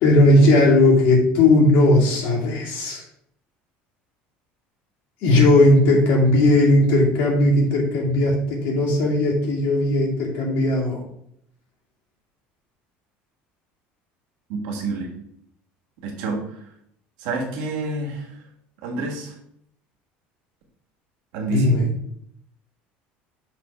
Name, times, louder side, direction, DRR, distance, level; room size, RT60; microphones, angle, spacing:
voice 1, 0.0-3.0 5.2-11.0 21.5-21.8, left 2 dB, 55° left, -3 dB, 2.4 m, -17 dB
voice 2, 14.5-15.1 16.0-16.7 17.2-18.4 18.8-19.4 21.3-21.9, right 3 dB, 85° right, 2 dB, 1.6 m, -29 dB
5.8 x 3.6 x 5.4 m, 0.71 s
cardioid pair, 160°, 4 cm